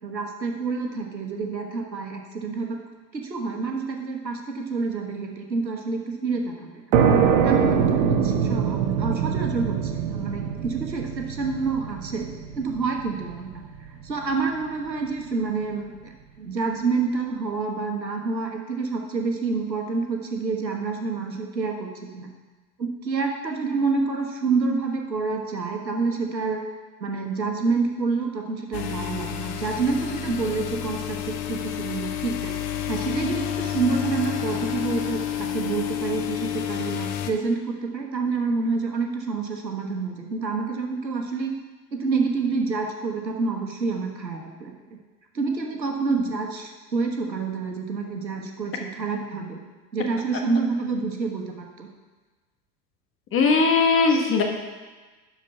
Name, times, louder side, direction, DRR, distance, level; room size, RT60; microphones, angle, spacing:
voice 1, 0.0-2.8 3.1-6.8 7.4-13.6 14.0-16.1 16.4-22.3 22.8-26.6 27.0-32.6 32.9-41.5 41.9-44.7 45.3-49.6 49.9-51.9, right 4 dB, 85° right, 3 dB, 1.4 m, -28 dB
sound 1, 6.9-14.3, right 7 dB, 50° right, 1.1 m, -23 dB
sound 2, 28.7-37.3, left 11 dB, 45° left, 0.9 m, -30 dB
voice 2, 53.3-54.4, left 4 dB, 25° left, 2 dB, 1.3 m, -19 dB
11.5 x 4.8 x 5.7 m, 1.3 s
figure-of-eight pair, 90°, 50 cm